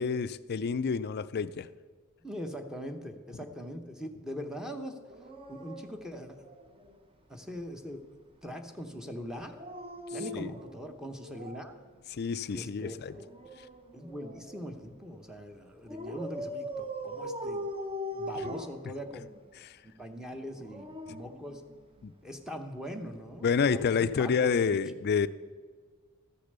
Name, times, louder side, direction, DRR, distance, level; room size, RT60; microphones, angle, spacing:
voice 1, 0.0-1.7 10.3-10.5 12.1-13.1 18.4-18.5 19.6-19.8 21.1-21.2 22.0-22.1 23.4-25.3, left 6 dB, 50° left, 15 dB, 0.4 m, -29 dB
voice 2, 2.2-5.0 5.5-6.4 7.3-8.1 8.4-9.6 10.1-11.7 12.5-13.3 13.9-17.6 18.1-19.3 20.0-21.6 22.2-24.8, equal, 5° right, 2 dB, 0.8 m, -41 dB
Dog, 5.1-7.0 9.4-11.8 13.1-14.7 15.9-19.4 20.4-22.1 23.3-23.5, equal, 25° right, 1.0 m, -41 dB
13.5 x 6.7 x 6.7 m, 1.5 s
head